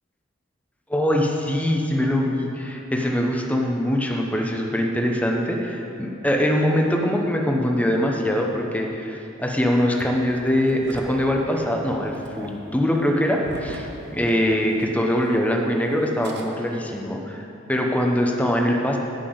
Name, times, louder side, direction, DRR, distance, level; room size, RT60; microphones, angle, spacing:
voice 1, 0.9-19.0, equal, 10° left, 1 dB, 0.9 m, -23 dB
Engine starting, 9.9-14.8 15.1-15.2 16.0-16.4, right 1 dB, 60° right, 1.0 m, -40 dB
10.0 x 6.1 x 7.8 m, 2.7 s
head